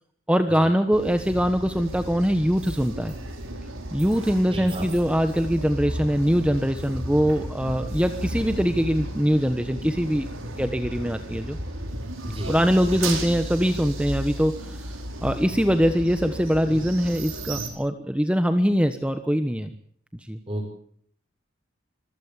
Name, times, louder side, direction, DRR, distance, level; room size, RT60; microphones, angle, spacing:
voice 1, 0.3-3.1 3.9-10.3 10.6-11.6 12.5-14.9 15.2-19.7 20.2-20.4, equal, 5° right, 8 dB, 1.2 m, -23 dB
sound 1, 0.9-17.7, right 1 dB, 80° right, 5.6 m, -34 dB
voice 2, 4.5-4.9 12.2-12.6 20.5-20.8, right 1 dB, 25° right, -1 dB, 6.1 m, -32 dB
26.5 x 15.0 x 8.8 m, 0.63 s
head